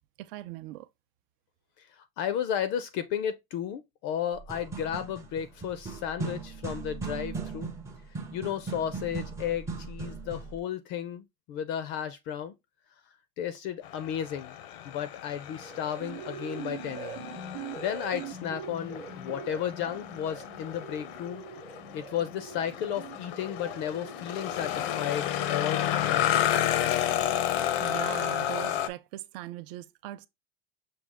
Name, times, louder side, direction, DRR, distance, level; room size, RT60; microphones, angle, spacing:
voice 1, 0.2-0.9 27.8-30.3, right 16 dB, 65° right, 0.6 m, -40 dB
voice 2, 1.8-7.7 8.3-12.5 13.4-14.5 14.8-17.3 17.8-21.4 21.9-26.6, left 9 dB, 40° left, 0.4 m, -34 dB
sound 1, 4.3-10.6, right 4 dB, 10° right, 0.5 m, -38 dB
sound 2, 13.8-28.9, left 11 dB, 85° left, 0.7 m, -32 dB
sound 3, 15.4-26.0, right 7 dB, 30° right, 0.8 m, -44 dB
6.2 x 2.3 x 3.4 m
cardioid pair, 165°, 30 cm